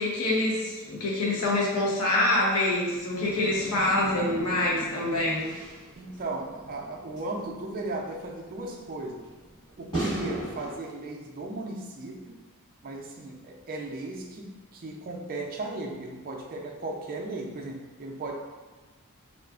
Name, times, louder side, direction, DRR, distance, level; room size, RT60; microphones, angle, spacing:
voice 1, 0.0-5.5, left 2 dB, 80° left, -4 dB, 0.8 m, -26 dB
sound 1, 3.1-10.8, right 2 dB, 20° left, 1.3 m, -38 dB
voice 2, 5.9-9.2 9.8-12.4 12.8-18.3, right 2 dB, 40° right, 0 dB, 0.4 m, -36 dB
3.7 x 2.4 x 2.3 m, 1.2 s
head